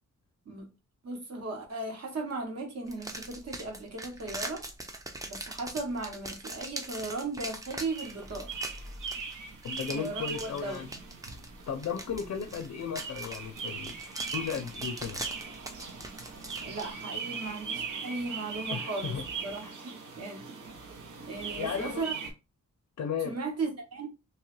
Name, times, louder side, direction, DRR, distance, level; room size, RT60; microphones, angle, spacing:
voice 1, 1.0-4.6 5.3-8.5 9.9-11.0 16.6-19.2 19.4-20.4 21.3-22.2 23.2-24.1, right 3 dB, 55° right, 0.9 m, -36 dB
sound 1, 2.9-16.9, right 1 dB, 10° right, 0.3 m, -42 dB
sound 2, 7.9-22.3, right 5 dB, 80° right, 0.8 m, -40 dB
voice 2, 9.6-10.9 11.7-13.9 14.3-15.2 18.7-19.2 19.6-19.7 21.6-22.0 23.0-23.3, left 7 dB, 65° left, 0.4 m, -35 dB
2.9 x 2.3 x 3.0 m
wide cardioid pair, 150°, 31 cm